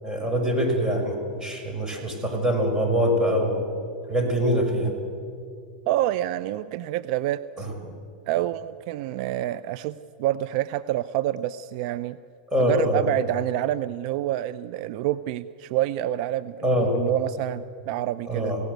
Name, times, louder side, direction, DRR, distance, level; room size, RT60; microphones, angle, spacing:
voice 1, 0.0-3.7 4.1-4.9 7.6-7.7 12.5-13.1 16.6-16.9 18.3-18.6, equal, 10° right, 1 dB, 5.7 m, -24 dB
voice 2, 5.9-7.7 8.3-12.2 12.6-18.5, right 13 dB, 55° right, 14 dB, 0.6 m, -27 dB
25.5 x 17.5 x 8.1 m, 2.4 s
hypercardioid pair, 115°, 5 cm